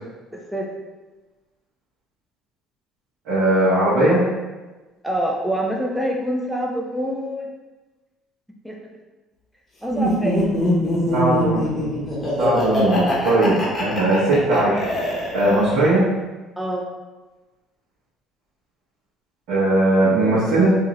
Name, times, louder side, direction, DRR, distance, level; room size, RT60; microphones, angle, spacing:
voice 1, 0.3-0.7 5.0-7.5 8.6-8.8 9.8-10.5 15.5-15.6 16.6-16.8, right 1 dB, ahead, 0 dB, 0.4 m, -26 dB
voice 2, 3.3-4.2 11.1-11.6 12.4-14.9 15.3-16.0 19.5-20.8, right 1 dB, 80° right, -11 dB, 1.1 m, -18 dB
Laughter, 9.9-15.9, left 1 dB, 15° left, 0.9 m, -23 dB
3.6 x 2.7 x 3.0 m, 1.2 s
cardioid pair, 165°, 0 cm